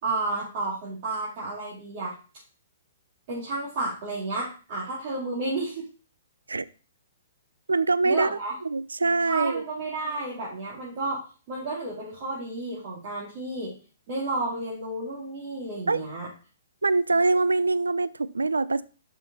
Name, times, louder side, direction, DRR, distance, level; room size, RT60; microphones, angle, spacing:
voice 1, 0.0-2.1 3.3-5.9 8.0-8.5 9.2-13.7 14.1-16.3, right 2 dB, 45° right, -7 dB, 3.1 m, -31 dB
voice 2, 7.7-8.4 8.6-9.6 15.9-16.0 16.8-18.8, right 3 dB, 90° right, 16 dB, 0.4 m, -24 dB
5.8 x 5.7 x 4.1 m, 0.36 s
hypercardioid pair, 125°, 0 cm